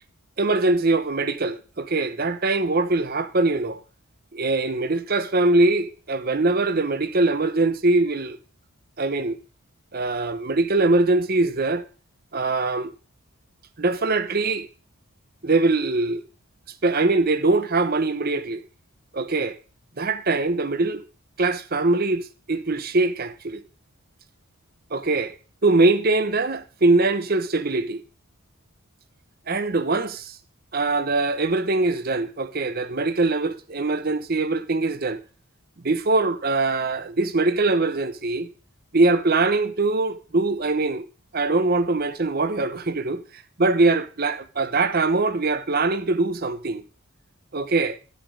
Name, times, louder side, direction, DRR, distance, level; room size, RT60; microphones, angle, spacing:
voice 1, 0.4-3.8 4.3-8.4 9.0-9.4 9.9-11.8 12.3-12.9 13.8-14.7 15.4-16.2 16.8-18.6 19.1-19.6 20.0-21.0 21.4-23.6 24.9-25.3 25.6-28.0 29.5-30.4 30.7-35.2 35.8-38.5 38.9-41.0 41.3-43.2 43.6-46.8 47.5-48.0, right 3 dB, 45° right, 0.9 m, -22 dB
12.0 x 8.4 x 3.7 m
head